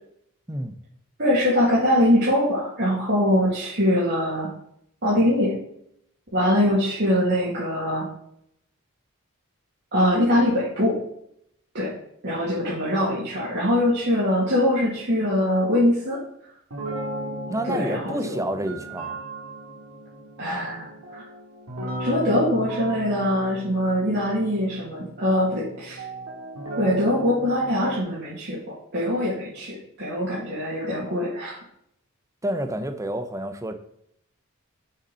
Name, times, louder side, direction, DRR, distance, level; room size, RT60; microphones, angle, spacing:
voice 1, 1.2-4.5 5.0-5.5 6.3-8.0 9.9-11.0 11.7-11.9 12.2-16.2 17.6-18.3 20.4-21.3 22.0-26.0 26.8-28.6 28.9-31.6, left 1 dB, 55° right, -8 dB, 2.5 m, -22 dB
sound 1, 16.7-28.0, right 1 dB, 90° right, 2.7 m, -36 dB
voice 2, 17.5-19.2 32.4-33.7, right 1 dB, 15° right, 8 dB, 0.7 m, -29 dB
6.8 x 5.7 x 5.6 m, 0.72 s
head